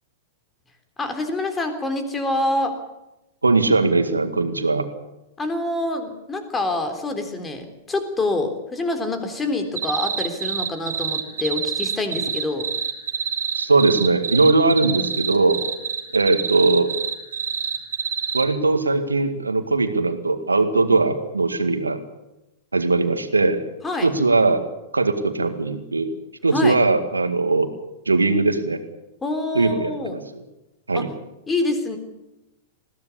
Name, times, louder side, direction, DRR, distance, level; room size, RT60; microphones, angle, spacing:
voice 1, 1.0-2.8 5.4-12.7 23.8-24.1 26.5-26.8 29.2-30.2 30.9-31.1 31.5-32.0, left 2 dB, 15° left, 6 dB, 3.5 m, -26 dB
voice 2, 3.4-4.9 13.6-15.6 16.1-16.9 18.3-22.0 22.7-23.6 24.0-24.6 24.9-26.1 26.4-27.7 28.1-28.8 29.5-30.2 30.9-31.1, right 3 dB, 80° right, 9 dB, 2.0 m, -20 dB
sound 1, 9.8-18.5, right 7 dB, 65° right, 2.3 m, -26 dB
21.0 x 16.0 x 8.5 m, 0.96 s
figure-of-eight pair, 100°, 0 cm